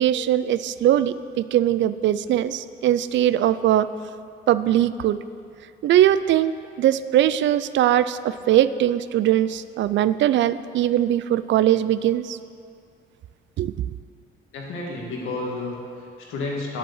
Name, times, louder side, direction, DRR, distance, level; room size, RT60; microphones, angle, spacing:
voice 1, 0.0-3.9 4.5-5.2 5.8-6.5 6.8-12.4 13.6-13.7, right 12 dB, 70° right, 15 dB, 0.4 m, -20 dB
voice 2, 14.5-16.8, left 2 dB, 90° left, -2 dB, 1.9 m, -31 dB
8.1 x 7.6 x 7.2 m, 2.4 s
cardioid pair, 90°, 20 cm